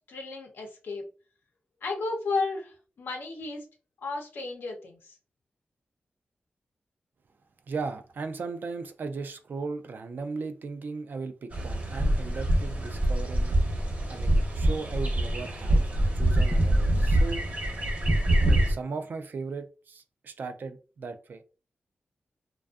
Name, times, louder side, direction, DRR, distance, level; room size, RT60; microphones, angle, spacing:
voice 1, 0.1-1.0 1.8-3.7 4.0-5.1, left 3 dB, 90° left, 0.7 m, -33 dB
voice 2, 7.7-13.6 14.1-15.9 16.1-17.4 18.4-21.4, right 4 dB, 65° right, 0.4 m, -37 dB
sound 1, 11.5-18.7, right 1 dB, 45° right, 0.8 m, -25 dB
2.5 x 2.3 x 2.3 m
wide cardioid pair, 100°, 4 cm